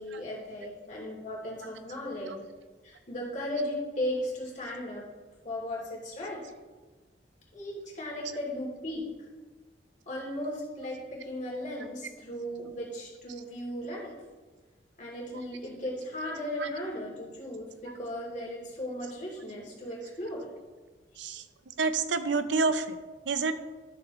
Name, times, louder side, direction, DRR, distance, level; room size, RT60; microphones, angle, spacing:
voice 1, 0.0-2.3 2.8-5.1 5.4-6.4 7.5-9.1 10.1-14.1 15.0-20.5, left 1 dB, 40° left, -3 dB, 2.7 m, -36 dB
voice 2, 21.8-23.0 23.3-23.5, right 4 dB, 75° right, 10 dB, 0.6 m, -28 dB
12.5 x 6.7 x 3.0 m, 1.3 s
head